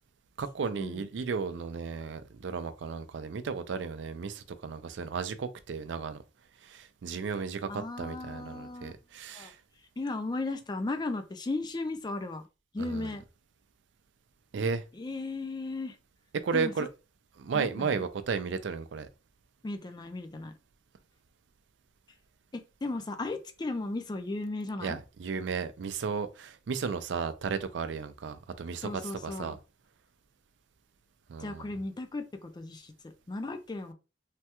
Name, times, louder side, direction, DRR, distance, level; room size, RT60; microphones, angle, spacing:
voice 1, 0.4-6.2 6.6-9.6 12.8-13.1 14.5-14.8 16.3-16.9 17.4-19.1 24.8-29.6 31.3-31.7, right 5 dB, 70° right, 0.4 m, -34 dB
voice 2, 7.7-8.9 9.3-9.5 10.0-12.4 12.7-13.2 14.9-16.0 16.5-16.7 17.5-18.0 19.6-20.5 22.5-25.0 28.8-29.6 31.4-32.9 33.3-33.9, left 2 dB, 25° left, 0.4 m, -36 dB
3.2 x 2.2 x 2.8 m
head